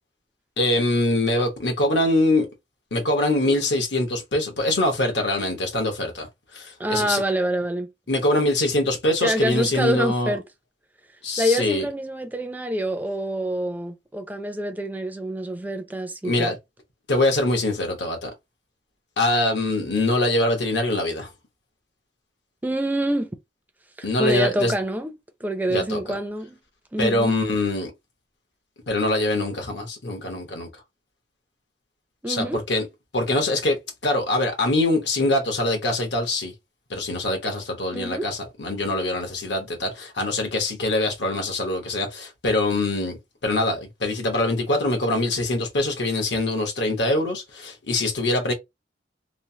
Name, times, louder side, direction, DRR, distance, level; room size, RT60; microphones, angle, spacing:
voice 1, 0.6-2.5 2.9-6.3 6.5-7.2 8.1-10.4 11.2-11.9 16.2-16.6 17.1-18.3 19.2-21.3 24.0-24.7 25.7-26.0 27.0-27.9 28.9-30.7 32.3-32.9 33.1-33.8 34.0-36.5 36.9-43.2 43.4-48.5, left 2 dB, 75° left, 1.1 m, -23 dB
voice 2, 6.8-7.9 9.2-10.4 11.4-16.6 22.6-23.4 24.0-25.1 25.4-26.6 26.9-27.4 32.2-32.6 37.9-38.3, equal, 10° right, 0.5 m, -26 dB
3.1 x 2.0 x 2.7 m
head